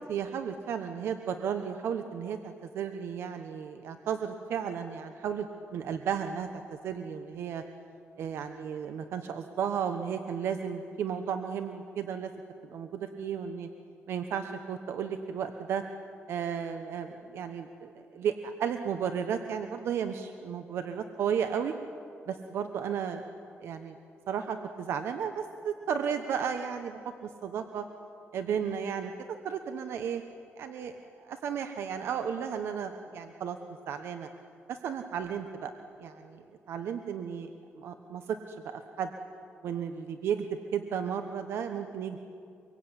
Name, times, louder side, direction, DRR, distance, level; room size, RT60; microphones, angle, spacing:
voice 1, 0.1-7.6 8.2-12.3 12.6-13.7 14.1-15.8 16.3-21.7 22.3-23.2 23.6-23.9 24.3-27.8 28.3-29.1 29.4-30.2 30.6-33.6 33.9-34.3 34.7-35.7 36.0-37.5 37.8-39.1 39.6-40.5 40.7-42.2, right 7 dB, 70° right, 7 dB, 1.2 m, -34 dB
25.0 x 23.0 x 9.9 m, 2.6 s
cardioid pair, 160°, 4 cm